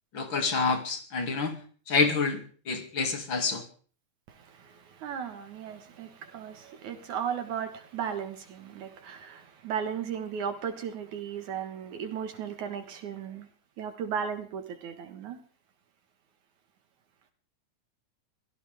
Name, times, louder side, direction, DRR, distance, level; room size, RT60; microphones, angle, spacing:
voice 1, 0.1-1.6 1.9-2.4 2.7-3.6, left 4 dB, 40° left, 2.9 m, -27 dB
voice 2, 4.3-13.5 13.8-15.4, right 8 dB, 75° right, 2.9 m, -36 dB
24.5 x 16.5 x 3.6 m
omnidirectional pair, 3.5 m